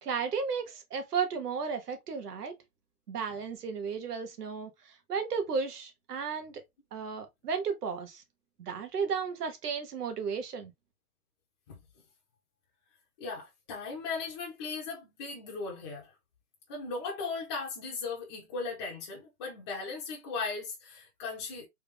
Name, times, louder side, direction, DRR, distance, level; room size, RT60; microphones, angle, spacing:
voice 1, 0.0-2.6 3.1-4.7 5.1-6.5 6.9-8.2 8.6-10.7, right 6 dB, 90° right, 1.1 m, -34 dB
voice 2, 13.2-16.1 16.7-21.7, left 4 dB, 20° left, 0.6 m, -37 dB
3.4 x 2.4 x 3.3 m
hypercardioid pair, 155°, 45 cm